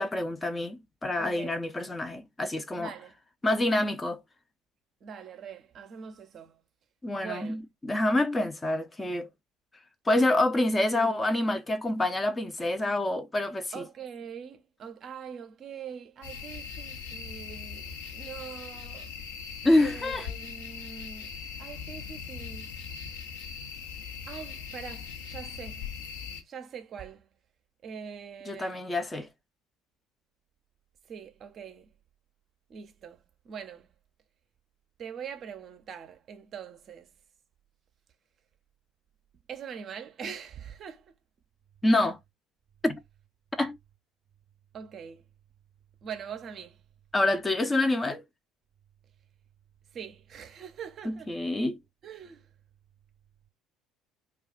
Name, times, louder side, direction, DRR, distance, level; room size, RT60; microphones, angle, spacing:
voice 1, 0.0-2.9 3.4-4.2 7.0-7.6 7.8-9.3 10.1-13.8 19.6-20.3 28.5-29.3 41.8-42.2 42.8-43.0 43.6-43.8 47.1-48.2 51.1-51.8, left 1 dB, 20° left, 0.5 m, -27 dB
voice 2, 1.2-1.5 2.7-3.1 5.0-6.6 7.1-7.7 10.9-11.2 13.7-19.1 19.8-21.3 21.6-22.8 24.3-25.8 26.4-27.3 27.8-28.8 31.1-31.9 32.7-33.9 35.0-37.1 39.5-41.1 44.7-45.2 46.0-46.8 49.9-51.5 52.0-52.5, right 7 dB, 45° right, 0.5 m, -43 dB
sound 1, 16.2-26.4, left 6 dB, 75° left, 0.7 m, -40 dB
2.3 x 2.3 x 3.6 m
figure-of-eight pair, 60°, 0 cm